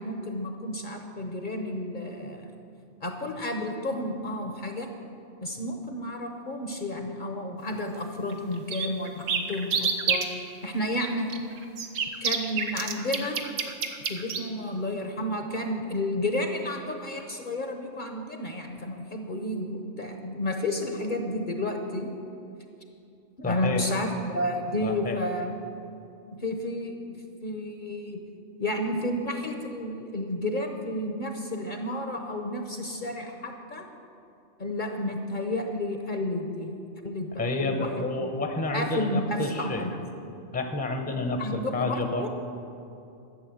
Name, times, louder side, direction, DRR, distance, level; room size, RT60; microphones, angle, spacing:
voice 1, 0.0-2.6 3.0-4.9 5.4-10.3 10.6-11.3 12.2-13.4 14.0-22.1 23.4-25.5 26.3-26.9 27.4-28.2 28.6-33.9 34.6-36.7 37.0-38.1 38.7-40.0 41.4-42.3, left 1 dB, 45° left, 4 dB, 0.9 m, -31 dB
sound 1, 8.3-8.4 8.7-10.2 11.3-14.4, right 6 dB, 80° right, 1.3 m, -28 dB
voice 2, 23.4-23.8 24.8-25.2 37.4-39.9 40.5-42.3, left 2 dB, 10° left, 4 dB, 0.8 m, -29 dB
12.0 x 7.5 x 7.7 m, 2.6 s
omnidirectional pair, 1.3 m